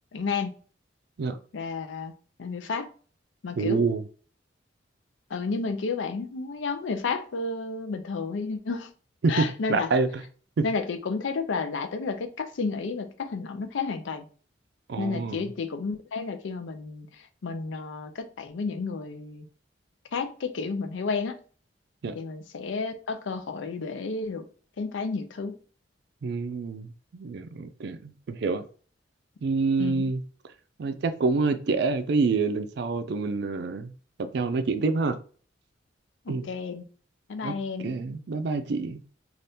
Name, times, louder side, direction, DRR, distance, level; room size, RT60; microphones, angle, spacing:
voice 1, 0.1-0.5 1.5-2.1 2.4-2.9 3.4-3.8 5.3-8.9 9.3-9.9 10.6-14.2 15.0-19.5 20.1-21.4 22.1-24.5 24.8-25.5 29.8-30.1 36.3-36.8 37.3-37.9, left 4 dB, 90° left, 0.5 m, -31 dB
voice 2, 3.6-4.0 9.2-10.2 10.6-10.7 14.9-15.5 22.0-22.1 26.2-28.6 29.4-30.2 30.8-33.9 34.2-35.2 36.3-36.5 37.4-37.5 37.8-39.0, right 4 dB, 65° right, 0.4 m, -27 dB
2.7 x 2.4 x 3.4 m
head